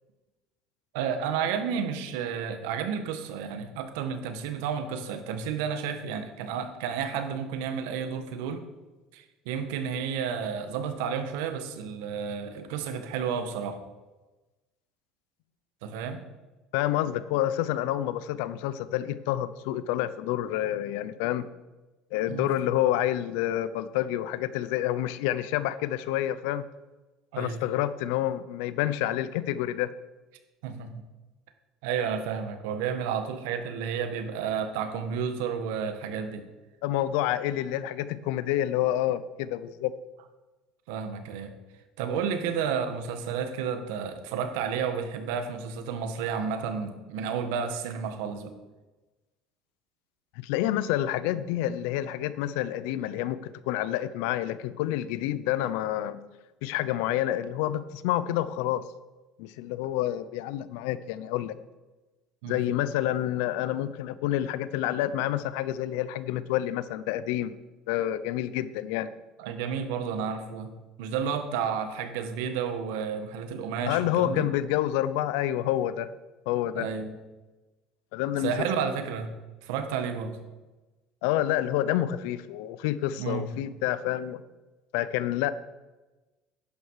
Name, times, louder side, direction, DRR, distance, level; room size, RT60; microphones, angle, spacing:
voice 1, 0.9-8.6 9.1-13.8 15.8-16.2 22.3-22.5 27.3-27.6 30.6-31.0 31.8-36.4 40.9-41.5 42.0-48.5 62.4-62.6 69.4-74.5 76.7-77.2 78.4-79.3 79.6-80.4 83.2-83.5, right 7 dB, 85° right, 8 dB, 1.5 m, -31 dB
voice 2, 16.7-21.5 22.1-26.6 27.4-29.9 36.8-39.9 42.1-42.2 50.4-56.2 56.6-58.8 59.4-61.6 62.5-67.5 67.9-69.1 73.9-76.1 76.5-76.9 78.1-78.5 81.2-84.4 84.9-85.5, left 13 dB, 80° left, 16 dB, 0.6 m, -28 dB
11.5 x 10.5 x 4.8 m, 1.1 s
supercardioid pair, 100°, 0 cm